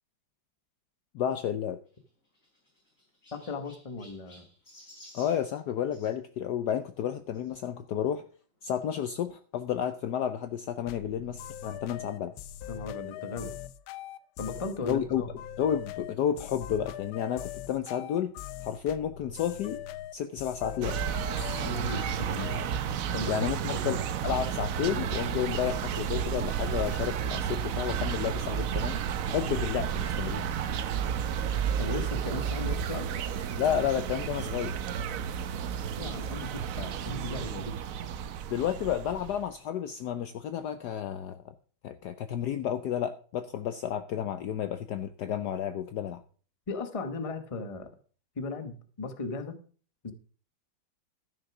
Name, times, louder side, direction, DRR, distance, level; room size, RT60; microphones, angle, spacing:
voice 1, 1.1-1.8 5.1-8.2 8.6-12.3 14.8-15.2 15.6-18.3 18.6-19.8 20.1-21.0 23.3-30.5 33.6-34.8 38.5-41.5 41.8-46.2, left 9 dB, 65° left, 10 dB, 1.1 m, -31 dB
Chirp tweet, 1.8-6.1 7.3-7.5 8.2-8.3 8.5-8.6 9.9-10.0, left 1 dB, 40° left, 4.5 m, -55 dB
voice 2, 3.3-4.5 12.7-13.5 14.4-15.3 21.6-22.6 23.1-23.4 23.7-24.0 31.8-33.1 36.0-37.7 46.7-47.9 48.4-49.6 50.0-50.1, left 3 dB, 20° left, 8 dB, 1.0 m, -37 dB
sound 1, 10.9-22.7, left 12 dB, 85° left, 1.5 m, -41 dB
sound 2, 20.8-39.5, right 8 dB, 65° right, 0.9 m, -32 dB
13.0 x 6.5 x 6.0 m, 0.42 s
omnidirectional pair, 2.1 m